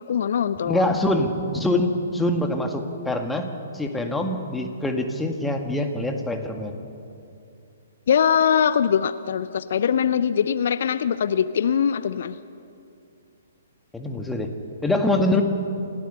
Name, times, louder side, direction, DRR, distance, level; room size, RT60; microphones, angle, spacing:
voice 1, 0.1-0.9 8.1-12.4, left 8 dB, 55° left, 14 dB, 0.6 m, -22 dB
voice 2, 0.7-6.8 13.9-14.5 14.8-15.4, left 1 dB, 5° left, 4 dB, 1.9 m, -24 dB
28.5 x 16.0 x 6.7 m, 2.6 s
figure-of-eight pair, 125°, 0 cm